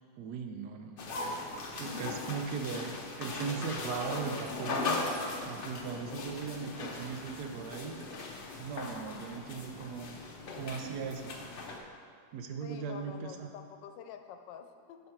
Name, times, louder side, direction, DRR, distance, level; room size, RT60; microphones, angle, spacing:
voice 1, 0.2-1.3 1.8-5.1 5.4-8.0 8.6-10.1 10.5-11.4 12.3-13.5, right 5 dB, 70° right, 5 dB, 1.1 m, -38 dB
sound 1, 1.0-11.8, left 3 dB, 70° left, 0.5 m, -39 dB
voice 2, 2.3-2.8 12.6-15.0, left 8 dB, 85° left, 7 dB, 1.3 m, -48 dB
7.9 x 5.5 x 4.4 m, 2.1 s
omnidirectional pair, 1.9 m